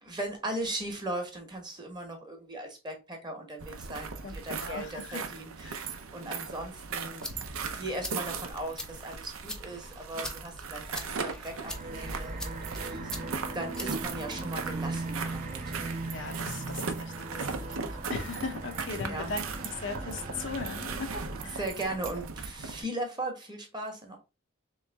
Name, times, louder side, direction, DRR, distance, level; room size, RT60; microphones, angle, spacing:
voice 1, 0.0-15.7 18.9-19.3 21.5-24.2, right 1 dB, 20° right, 1.0 m, -38 dB
sound 1, 3.6-22.8, right 5 dB, 75° right, 0.6 m, -38 dB
voice 2, 4.2-5.2 5.6-5.8 10.9-11.2 12.9-13.3 16.0-19.4 19.7-21.6, left 4 dB, 60° left, 0.7 m, -39 dB
sound 2, 7.0-15.0, left 1 dB, 5° left, 0.5 m, -44 dB
sound 3, 11.6-22.2, right 2 dB, 35° right, 0.7 m, -39 dB
3.3 x 3.1 x 3.3 m
head